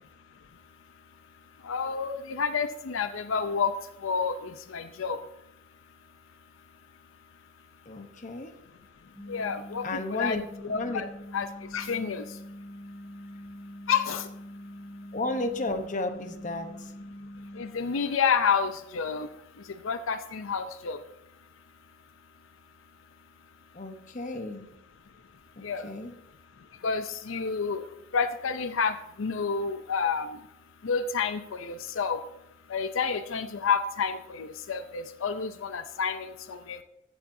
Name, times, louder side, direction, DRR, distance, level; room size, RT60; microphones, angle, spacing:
voice 1, 1.6-3.7 4.0-5.2 9.3-9.8 10.2-10.4 10.7-11.1 11.3-11.5 11.7-12.2 13.9-14.3 17.6-19.3 19.8-21.0 25.6-25.9 26.8-27.8 28.1-30.3 30.8-32.2 32.7-36.8, left 6 dB, 85° left, 10 dB, 0.6 m, -29 dB
voice 2, 7.9-8.5 9.8-11.1 15.1-16.9 23.7-24.7 25.6-26.2, left 2 dB, 40° left, 6 dB, 0.9 m, -33 dB
sound 1, 9.1-17.6, equal, 15° right, 4.2 m, -44 dB
15.0 x 7.4 x 2.7 m, 0.85 s
head